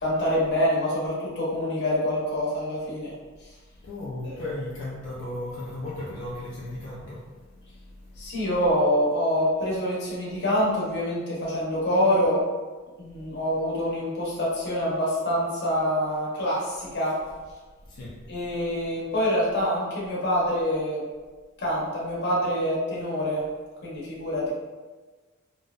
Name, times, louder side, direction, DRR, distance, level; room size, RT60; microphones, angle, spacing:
voice 1, 0.0-3.1 4.2-4.4 8.2-12.4 13.0-17.2 18.3-21.0 21.6-23.4 23.8-24.5, equal, 55° left, -6 dB, 0.8 m, -26 dB
voice 2, 3.7-8.5 13.1-13.4 17.8-18.8, left 1 dB, 80° left, -6 dB, 0.4 m, -37 dB
2.6 x 2.0 x 2.3 m, 1.3 s
head